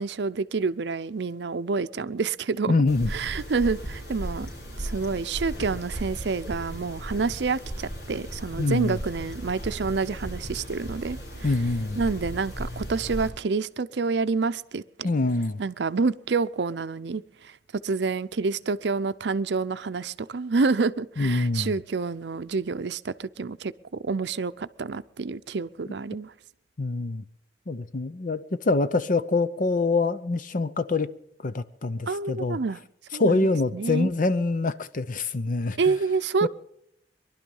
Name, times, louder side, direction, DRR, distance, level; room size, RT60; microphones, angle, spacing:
voice 1, 0.0-2.7 3.1-4.5 4.8-11.5 12.0-15.1 15.6-17.5 17.8-23.7 24.0-26.3 32.1-32.8 33.1-34.1 35.8-36.5, right 4 dB, 70° right, 0.6 m, -28 dB
voice 2, 2.7-3.1 8.6-9.0 11.4-12.0 15.0-15.6 21.2-21.8 26.8-27.2 27.7-31.1 31.4-32.6 33.2-35.9 36.4-36.5, left 3 dB, 50° left, 0.7 m, -25 dB
sound 1, 2.9-13.3, equal, 80° left, 5.2 m, -36 dB
22.5 x 12.0 x 5.5 m
head